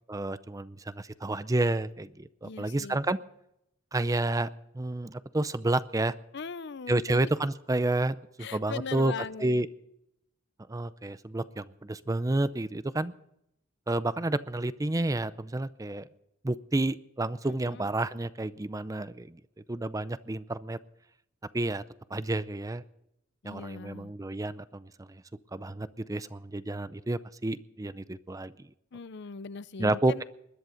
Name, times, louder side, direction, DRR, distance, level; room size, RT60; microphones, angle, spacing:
voice 1, 0.1-3.2 3.9-4.5 4.7-6.1 6.9-9.1 9.4-9.7 10.7-13.1 13.9-16.1 16.4-19.4 19.7-20.8 21.5-21.8 22.1-22.8 23.4-25.2 25.5-28.5 29.8-30.2, right 2 dB, 15° right, 15 dB, 0.5 m, -30 dB
voice 2, 2.4-3.0 6.3-7.3 8.4-9.7 17.4-17.9 23.4-24.1 28.9-30.2, left 5 dB, 60° left, 16 dB, 0.6 m, -40 dB
21.0 x 11.0 x 5.1 m, 0.78 s
head